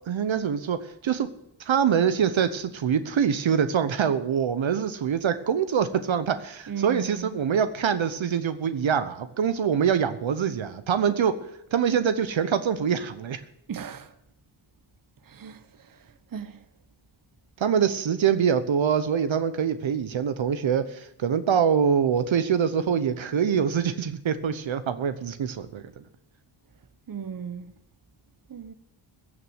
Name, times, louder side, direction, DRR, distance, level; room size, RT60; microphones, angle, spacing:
voice 1, 0.1-1.3 1.6-11.4 11.7-13.4 17.6-25.8, right 7 dB, 65° right, 1.0 m, -24 dB
voice 2, 6.7-7.3 13.7-14.1 15.3-15.6 16.3-16.6 27.1-27.6 28.5-28.7, right 7 dB, 45° right, 1.0 m, -35 dB
15.5 x 6.3 x 9.3 m
cardioid pair, 75°, 49 cm